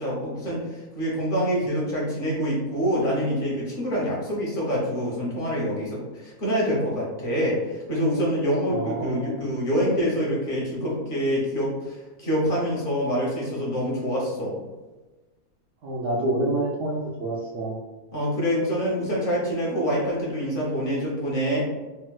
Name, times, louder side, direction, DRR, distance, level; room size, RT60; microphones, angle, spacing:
voice 1, 0.0-14.6 18.1-21.6, equal, 50° left, -4 dB, 0.7 m, -26 dB
voice 2, 8.7-9.4 15.8-17.8, right 1 dB, 70° right, -5 dB, 0.8 m, -28 dB
4.2 x 2.0 x 2.2 m, 1.2 s
omnidirectional pair, 1.6 m